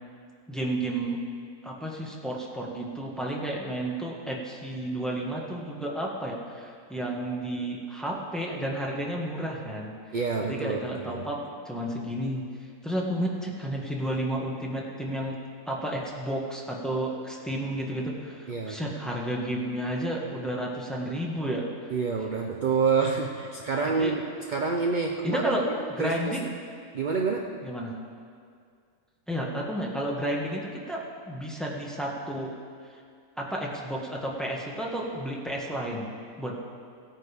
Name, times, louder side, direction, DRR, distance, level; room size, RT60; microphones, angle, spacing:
voice 1, 0.5-1.2 1.6-9.9 10.4-12.4 12.8-15.3 15.6-21.7 24.0-24.1 25.2-25.6 26.0-26.4 27.6-27.9 29.3-32.5 33.4-36.1 36.4-36.5, right 1 dB, ahead, -3 dB, 1.3 m, -31 dB
voice 2, 10.1-11.3 18.5-18.8 21.9-24.2 24.5-25.4 26.0-26.4 26.9-27.6, right 5 dB, 60° right, 1 dB, 0.5 m, -27 dB
17.5 x 9.2 x 3.4 m, 2.2 s
omnidirectional pair, 1.6 m